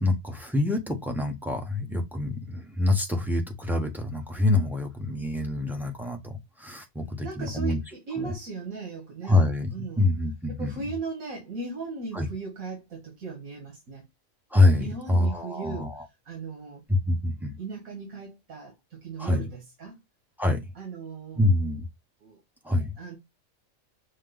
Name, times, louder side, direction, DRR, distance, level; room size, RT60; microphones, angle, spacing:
voice 1, 0.0-7.8 8.2-8.3 9.3-9.7 10.0-10.8 12.1-12.3 14.5-16.0 16.9-17.6 19.2-19.4 20.4-20.6 21.4-21.9 22.6-22.9, left 2 dB, ahead, 0.8 m, -25 dB
voice 2, 7.2-10.1 10.5-14.1 14.8-15.9 16.3-16.8 17.6-20.0 20.8-21.4 22.2-22.4 22.7-23.2, right 4 dB, 80° right, 2.0 m, -37 dB
6.4 x 2.2 x 3.8 m
omnidirectional pair, 1.4 m